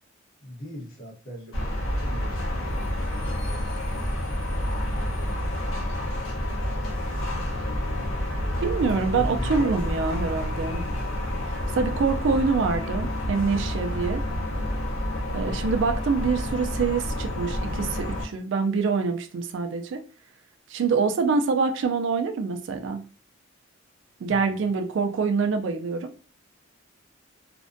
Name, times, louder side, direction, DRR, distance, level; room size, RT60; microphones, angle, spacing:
voice 1, 0.4-3.1 3.4-4.1 4.9-5.4 6.6-7.5 8.4-9.8 15.4-15.6 24.3-24.7, equal, 45° left, -2 dB, 0.8 m, -42 dB
sound 1, 1.5-18.3, left 1 dB, 85° left, 0.7 m, -29 dB
voice 2, 8.6-10.8 11.7-14.2 15.3-20.0 20.7-23.0 24.2-26.1, right 4 dB, 60° right, 7 dB, 0.3 m, -25 dB
2.5 x 2.1 x 2.5 m, 0.36 s
head